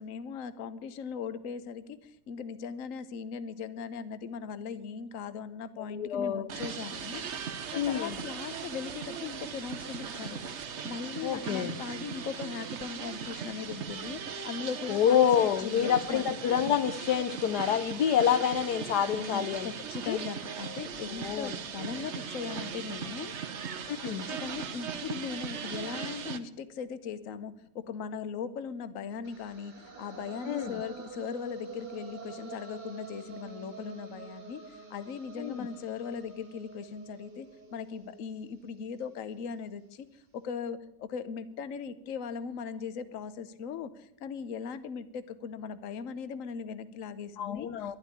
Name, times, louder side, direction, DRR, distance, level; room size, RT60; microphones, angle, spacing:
voice 1, 0.0-7.2 7.7-10.4 10.8-15.2 15.6-16.2 19.2-23.3 24.0-34.6 34.9-47.7, left 6 dB, 55° left, 13 dB, 1.3 m, -39 dB
voice 2, 5.8-6.5 7.7-8.2 11.2-11.8 14.9-19.7 20.0-20.2 21.1-21.5 23.9-24.3 30.4-30.8 35.4-35.7 47.4-48.0, left 9 dB, 80° left, 12 dB, 1.4 m, -28 dB
sound 1, 6.5-26.4, right 6 dB, 50° right, 1.1 m, -39 dB
sound 2, 29.2-39.3, right 5 dB, 85° right, 3.5 m, -47 dB
12.0 x 11.5 x 9.9 m, 0.77 s
omnidirectional pair, 1.7 m